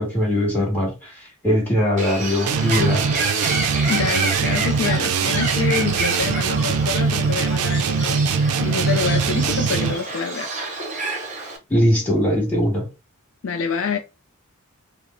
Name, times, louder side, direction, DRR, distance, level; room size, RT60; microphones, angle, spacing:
voice 1, 0.0-3.1 11.7-12.9, equal, 10° left, 1.5 m, -21 dB
Bird, 2.0-11.6, right 2 dB, 35° right, 0.8 m, -29 dB
sound 1, 2.5-10.1, right 5 dB, 80° right, 0.4 m, -22 dB
voice 2, 3.9-10.5 13.4-14.0, left 6 dB, 60° left, 0.4 m, -27 dB
5.0 x 2.0 x 2.5 m
head